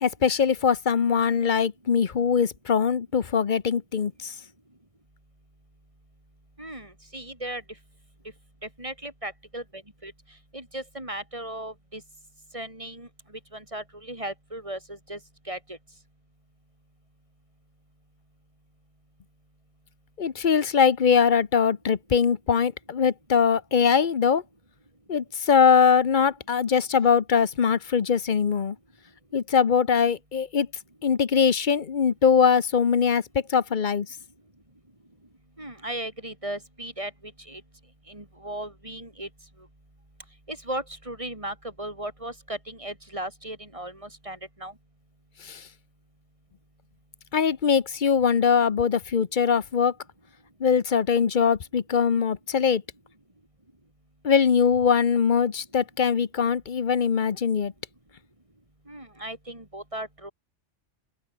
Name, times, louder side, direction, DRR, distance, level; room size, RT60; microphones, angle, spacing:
voice 1, 0.0-4.3 20.2-24.4 25.1-28.8 29.3-30.7 31.0-34.1 45.4-45.7 47.3-49.9 50.6-52.8 54.2-57.7, left 6 dB, 45° left, 1.0 m, -22 dB
voice 2, 6.6-7.6 8.6-10.1 10.5-12.0 12.5-13.1 13.5-15.2 15.5-15.8 35.6-37.6 38.1-39.3 40.5-44.7 58.9-60.3, right 1 dB, 25° right, 4.4 m, -36 dB
open air
omnidirectional pair, 1.2 m